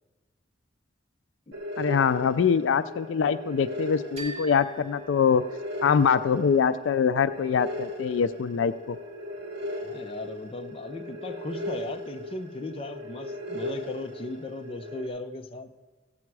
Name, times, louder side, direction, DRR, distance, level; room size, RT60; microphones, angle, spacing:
sound 1, 1.5-15.1, left 1 dB, 60° right, 1.6 m, -38 dB
voice 1, 1.8-5.4 5.8-9.0, left 6 dB, 85° left, 14 dB, 0.4 m, -24 dB
sound 2, 4.2-6.1, right 3 dB, 35° right, 2.0 m, -44 dB
voice 2, 9.8-15.7, left 2 dB, 30° left, 7 dB, 0.5 m, -37 dB
15.0 x 8.6 x 4.7 m, 1.3 s
head